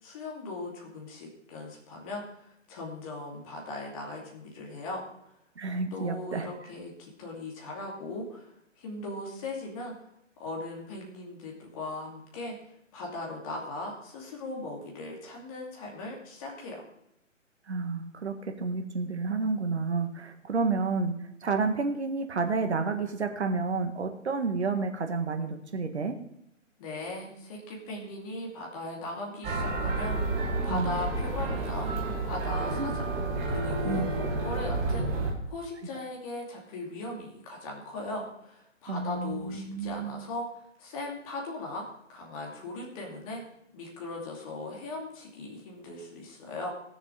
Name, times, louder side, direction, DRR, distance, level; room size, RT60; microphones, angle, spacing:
voice 1, 0.0-5.3 5.9-9.9 10.4-16.8 26.8-33.1 33.5-41.8 42.1-43.4 43.7-46.7, left 2 dB, 25° left, -2 dB, 2.6 m, -39 dB
voice 2, 5.5-6.5 17.7-21.1 21.4-26.1 30.7-30.9 32.8-32.9 33.8-34.1 38.9-40.3, right 4 dB, 60° right, 6 dB, 1.7 m, -30 dB
sound 1, 29.4-35.3, right 2 dB, 15° right, 1.5 m, -30 dB
17.5 x 7.0 x 5.0 m, 0.78 s
figure-of-eight pair, 135°, 38 cm